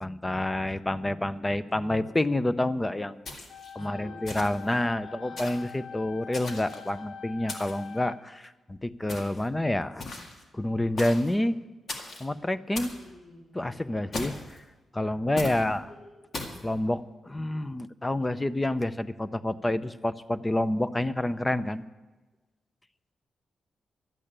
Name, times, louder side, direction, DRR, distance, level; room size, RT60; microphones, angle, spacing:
voice 1, 0.0-3.2 3.8-10.0 10.5-11.6 12.2-12.9 13.5-14.6 14.9-15.8 16.6-21.8, left 1 dB, 15° left, 14 dB, 0.6 m, -28 dB
sound 1, 3.3-3.7 4.3-4.7 5.4-5.7 6.3-6.9 7.5-7.9 9.1-9.5 10.0-10.4 11.0-11.3 11.9-12.3 12.8-13.0 14.1-14.6 15.4-15.6 16.3-16.6, left 2 dB, 60° left, 2.0 m, -38 dB
sound 2, 3.5-8.5, left 7 dB, 85° left, 0.9 m, -44 dB
voice 2, 3.8-4.3 5.0-5.5 6.9-7.0 12.8-13.9 15.2-16.2, left 1 dB, 40° left, -5 dB, 4.9 m, -51 dB
12.0 x 8.4 x 8.9 m, 1.2 s
cardioid pair, 80°, 0 cm